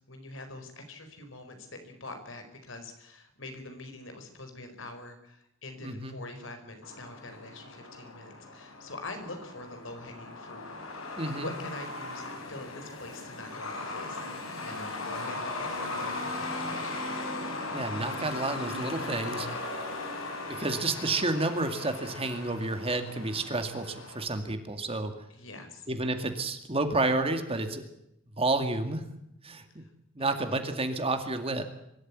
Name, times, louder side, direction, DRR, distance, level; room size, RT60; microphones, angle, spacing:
voice 1, 0.1-10.7 11.0-17.0 25.3-25.9 29.8-29.9 30.2-30.6, left 2 dB, 70° left, 6 dB, 4.7 m, -44 dB
voice 2, 5.8-6.2 11.2-11.5 17.7-19.5 20.5-25.1 25.9-27.8 28.4-29.1 29.4-29.8 30.1-31.6, right 2 dB, 30° right, 7 dB, 2.2 m, -30 dB
Truck, 6.8-24.2, left 2 dB, 85° left, 5.7 m, -38 dB
24.0 x 13.5 x 9.6 m, 0.81 s
head